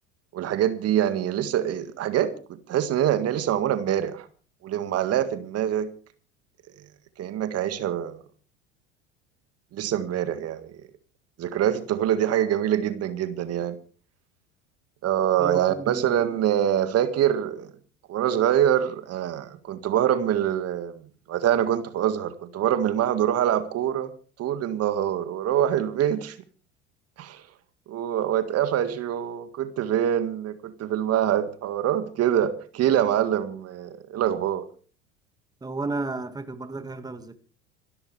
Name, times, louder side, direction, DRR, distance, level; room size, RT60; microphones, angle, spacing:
voice 1, 0.3-4.3 4.6-5.9 7.2-8.2 9.7-10.8 11.4-13.8 15.0-17.7 18.1-24.1 24.4-26.4 27.2-27.4 27.9-34.6, right 10 dB, 40° right, 1.9 m, -25 dB
voice 2, 15.4-16.3 35.6-37.3, right 3 dB, 10° right, 1.8 m, -33 dB
27.0 x 13.0 x 3.4 m
figure-of-eight pair, 75°, 37 cm